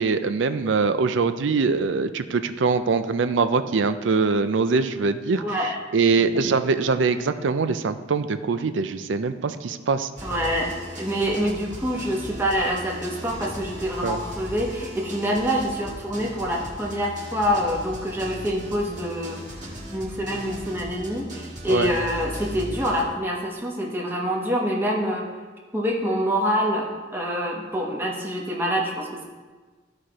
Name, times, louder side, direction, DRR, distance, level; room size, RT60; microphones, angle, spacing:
voice 1, 0.0-5.4 5.9-10.1 14.0-14.2 21.7-21.9, right 4 dB, 75° right, 11 dB, 0.5 m, -23 dB
voice 2, 5.4-5.8 10.2-25.3 25.7-29.2, equal, 10° right, -2 dB, 1.0 m, -26 dB
sound 1, 10.2-23.0, equal, 40° right, 1.8 m, -38 dB
14.0 x 4.8 x 3.0 m, 1.3 s
head